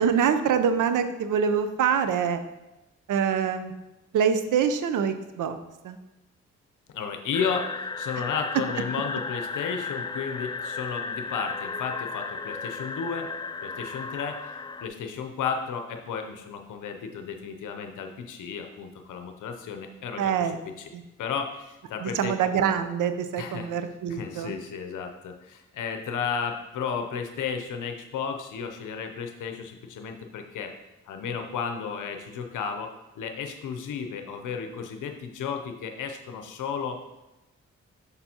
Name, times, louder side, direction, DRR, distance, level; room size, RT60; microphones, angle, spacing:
voice 1, 0.0-2.4 3.1-3.7 4.1-5.6 5.8-6.0 20.2-20.6 20.9-21.0 22.0-24.6, right 7 dB, 80° right, 10 dB, 0.6 m, -25 dB
voice 2, 6.9-13.3 13.6-20.9 21.2-22.4 23.4-23.7 24.1-30.7 31.1-37.0, left 6 dB, 85° left, 5 dB, 0.7 m, -33 dB
sound 1, 7.3-14.9, left 4 dB, 15° left, 0.3 m, -35 dB
6.8 x 6.8 x 2.8 m, 1.0 s
cardioid pair, 60°, 30 cm